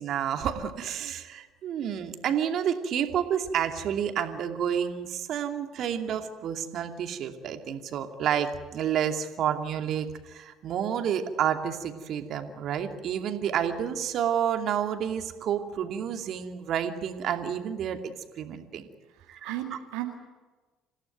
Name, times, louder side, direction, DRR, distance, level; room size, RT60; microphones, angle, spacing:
voice 1, 0.0-18.8 19.3-19.8, right 9 dB, 55° right, 6 dB, 2.6 m, -30 dB
voice 2, 19.1-20.1, right 14 dB, 70° right, 2 dB, 2.0 m, -36 dB
28.0 x 17.0 x 9.4 m, 1.3 s
hypercardioid pair, 55°, 0 cm